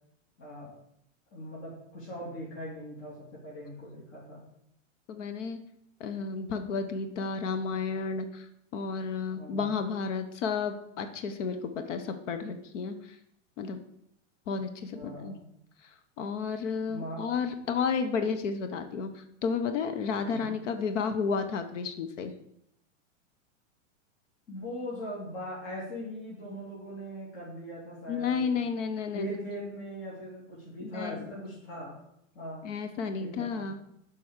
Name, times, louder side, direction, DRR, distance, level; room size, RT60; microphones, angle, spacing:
voice 1, 0.4-0.7 1.3-4.4 9.3-9.7 14.9-15.5 16.9-17.2 20.2-20.6 24.5-28.6 29.1-32.0 32.3-32.7 33.2-33.7, equal, 35° left, -6 dB, 3.3 m, -40 dB
voice 2, 5.1-5.6 6.0-8.5 8.7-13.2 13.6-13.8 14.5-15.4 15.8-22.3 28.1-29.3 30.8-31.3 32.6-33.8, left 5 dB, 70° left, 8 dB, 1.2 m, -32 dB
7.9 x 5.5 x 7.3 m, 0.76 s
supercardioid pair, 140°, 38 cm